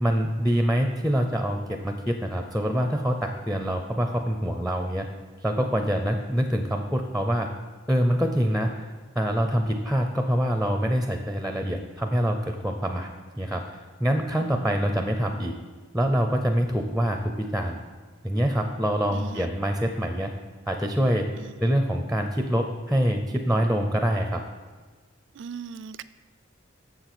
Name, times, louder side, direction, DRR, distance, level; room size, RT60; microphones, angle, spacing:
voice 1, 0.0-5.1 5.4-7.5 7.9-8.7 9.2-13.1 13.4-15.5 15.9-17.8 18.2-20.3 20.7-21.3 21.6-24.4, equal, ahead, 5 dB, 0.5 m, -25 dB
voice 2, 19.1-19.5 21.4-21.7 25.3-26.0, right 6 dB, 65° right, 15 dB, 0.4 m, -39 dB
7.1 x 7.1 x 6.0 m, 1.5 s
head